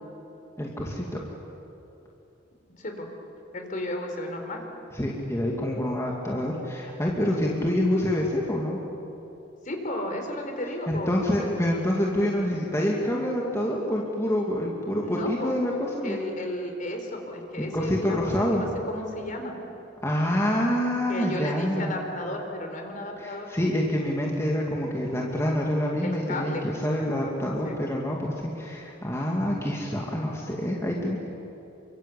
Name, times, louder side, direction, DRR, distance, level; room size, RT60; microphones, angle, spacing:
voice 1, 0.6-1.2 4.9-8.8 10.9-16.2 17.6-18.6 20.0-21.9 23.2-31.3, left 1 dB, 15° left, -2 dB, 2.6 m, -27 dB
voice 2, 2.8-3.1 3.5-4.6 9.6-11.2 15.0-15.6 16.0-19.5 21.1-23.5 26.0-26.6 27.6-27.7, left 1 dB, 45° left, 3 dB, 4.3 m, -33 dB
29.0 x 24.0 x 8.5 m, 3.0 s
head